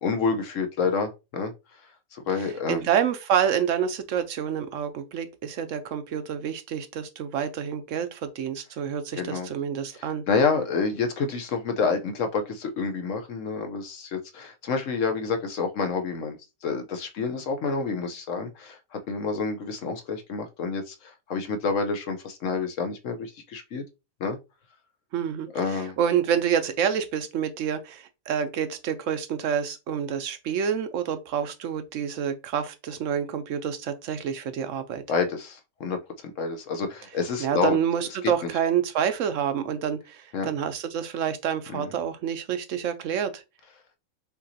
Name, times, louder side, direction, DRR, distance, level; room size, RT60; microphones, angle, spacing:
voice 1, 0.0-1.5 2.1-2.9 9.1-9.5 9.9-16.4 16.6-23.8 24.2-24.4 25.5-26.0 35.1-37.8 38.4-38.5 40.3-40.5 41.7-41.9, left 4 dB, 65° left, 1.1 m, -28 dB
voice 2, 2.7-10.2 25.1-35.0 37.4-43.4, right 8 dB, 65° right, 1.0 m, -28 dB
5.9 x 3.0 x 2.7 m
omnidirectional pair, 1.5 m